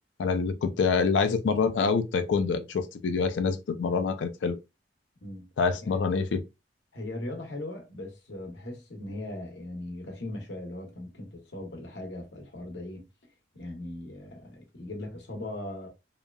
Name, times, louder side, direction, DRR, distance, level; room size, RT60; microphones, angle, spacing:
voice 1, 0.2-4.6 5.6-6.4, left 5 dB, 85° left, 0.4 m, -26 dB
voice 2, 6.9-13.1 13.5-15.9, left 1 dB, 70° left, 0.9 m, -39 dB
2.9 x 2.2 x 2.3 m
head